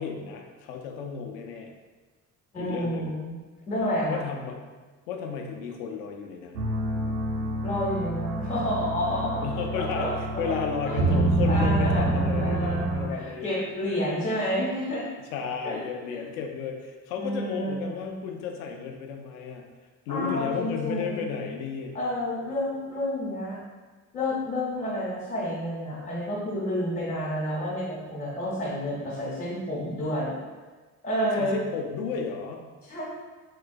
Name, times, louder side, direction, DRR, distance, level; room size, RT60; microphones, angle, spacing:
voice 1, 0.0-1.7 2.6-3.1 4.1-4.6 5.1-6.6 9.4-13.5 15.3-19.7 20.1-21.9 31.2-32.7, left 6 dB, 70° left, 3 dB, 0.5 m, -33 dB
voice 2, 2.5-3.3 3.7-4.2 7.6-9.4 9.7-10.5 10.8-11.0 11.5-12.8 13.1-15.1 15.6-15.8 17.2-18.2 20.1-21.2 21.9-23.6 24.1-30.3 31.0-31.6 32.8-33.0, left 1 dB, 85° left, -8 dB, 0.9 m, -30 dB
sound 1, 6.5-13.1, right 2 dB, 75° right, 0.6 m, -27 dB
3.7 x 3.1 x 2.2 m, 1.3 s
figure-of-eight pair, 45°, 44 cm